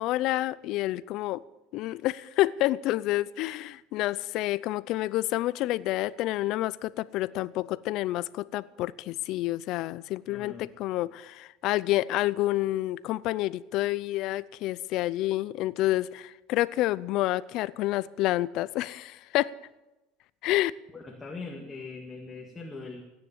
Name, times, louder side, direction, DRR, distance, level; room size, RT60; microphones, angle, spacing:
voice 1, 0.0-1.4 1.7-19.5 20.4-20.7, left 16 dB, 55° left, 0.5 m, -28 dB
voice 2, 10.3-10.8 20.9-23.0, left 3 dB, 15° left, 2.0 m, -41 dB
16.0 x 9.9 x 7.4 m
supercardioid pair, 130°, 0 cm